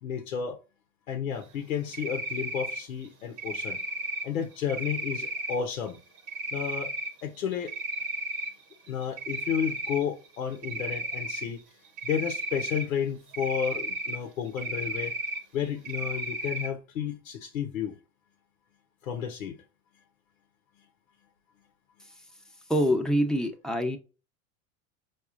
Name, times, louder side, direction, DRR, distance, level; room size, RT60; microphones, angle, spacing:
voice 1, 0.0-0.6 1.1-3.8 4.2-6.0 6.5-6.9 7.2-7.7 8.9-11.6 12.0-15.2 15.5-18.0 19.0-19.5, left 8 dB, 85° left, 0.7 m, -32 dB
Cricket, 1.9-2.8 3.4-4.2 4.7-5.5 6.3-7.1 7.5-8.5 8.9-10.0 10.6-11.4 12.0-12.8 13.3-14.2 14.6-15.4 15.8-16.7, right 2 dB, 60° right, 1.0 m, -33 dB
voice 2, 22.7-24.0, equal, ahead, 0.7 m, -25 dB
4.9 x 2.4 x 2.4 m
hypercardioid pair, 85°, 40 cm